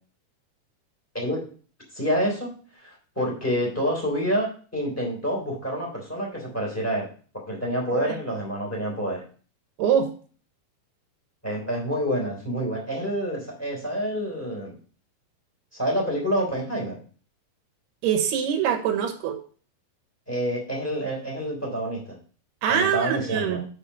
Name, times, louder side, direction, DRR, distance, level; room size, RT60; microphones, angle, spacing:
voice 1, 1.1-1.4 1.9-7.1 7.5-9.2 11.4-14.7 15.7-17.0 20.3-22.2 22.7-23.6, equal, 5° left, -2 dB, 2.4 m, -28 dB
voice 2, 9.8-10.1 18.0-19.4 22.6-23.6, right 8 dB, 85° right, 6 dB, 3.1 m, -24 dB
6.8 x 5.9 x 5.4 m, 0.40 s
omnidirectional pair, 4.6 m